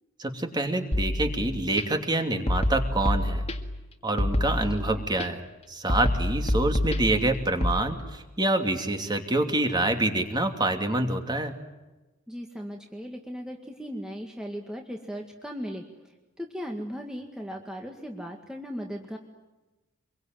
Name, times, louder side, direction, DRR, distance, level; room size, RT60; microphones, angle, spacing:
voice 1, 0.2-3.4 4.0-5.4 5.7-11.5, right 2 dB, 20° right, 5 dB, 2.7 m, -26 dB
sound 1, 0.9-1.8 2.5-3.8 4.2-5.3 5.9-7.8, left 1 dB, 30° left, 2.0 m, -27 dB
voice 2, 4.6-5.0 12.3-15.8 16.4-19.2, equal, 5° right, 1 dB, 1.9 m, -37 dB
26.5 x 23.0 x 9.3 m, 1.1 s
head